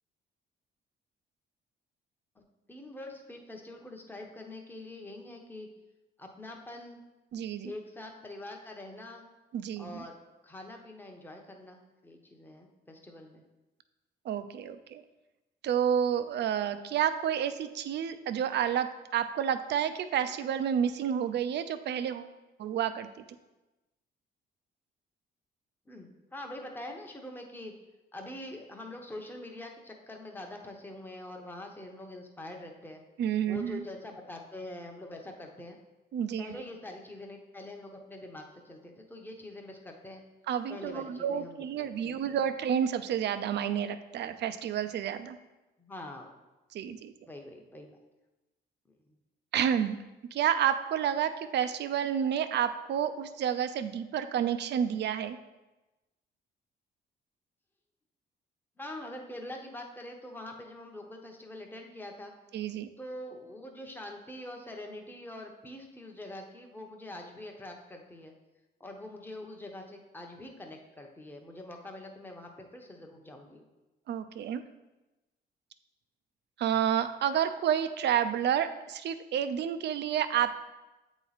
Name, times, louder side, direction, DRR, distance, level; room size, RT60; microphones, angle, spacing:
voice 1, 2.7-5.7 6.2-7.0 7.6-9.3 9.8-13.4 25.9-27.7 28.1-33.0 33.5-35.8 36.4-40.2 40.7-42.4 45.8-46.3 47.2-48.0 48.9-49.0 58.8-62.3 63.0-68.3 68.8-73.6, left 1 dB, 10° left, 2 dB, 0.9 m, -44 dB
voice 2, 7.3-7.7 9.5-10.0 14.3-15.0 15.6-22.3 22.6-23.1 33.2-33.8 36.1-36.5 40.5-45.4 46.7-47.1 49.5-50.0 50.3-55.4 62.5-62.9 74.1-74.6 76.6-80.6, right 9 dB, 60° right, 11 dB, 0.4 m, -30 dB
8.0 x 3.0 x 4.0 m, 1.1 s
cardioid pair, 90°, 20 cm